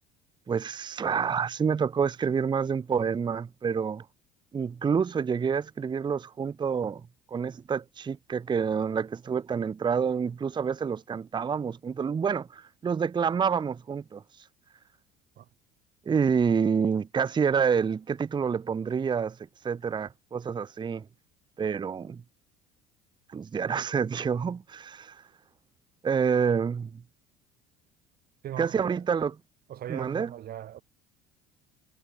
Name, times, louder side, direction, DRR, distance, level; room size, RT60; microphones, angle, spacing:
voice 1, 0.5-4.0 4.5-7.0 7.3-14.2 16.1-19.4 19.6-21.0 21.6-22.2 23.3-25.2 26.0-27.0 28.6-29.3 29.9-30.3, right 6 dB, 20° right, 0.7 m, -28 dB
voice 2, 28.4-29.1 29.7-30.8, right 12 dB, 50° right, 3.9 m, -38 dB
figure-of-eight pair, 60°, 20 cm